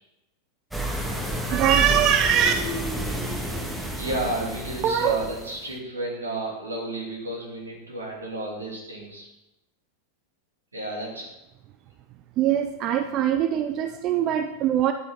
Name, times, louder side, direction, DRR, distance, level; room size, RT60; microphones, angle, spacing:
sound 1, 0.7-5.7, right 1 dB, 5° right, 1.5 m, -30 dB
voice 1, 1.5-2.5 4.8-5.2 12.4-14.9, right 9 dB, 35° right, 8 dB, 0.5 m, -22 dB
voice 2, 4.0-9.3 10.7-11.3, right 1 dB, 75° right, -2 dB, 3.0 m, -32 dB
11.0 x 7.9 x 4.5 m, 0.95 s
figure-of-eight pair, 90°, 0 cm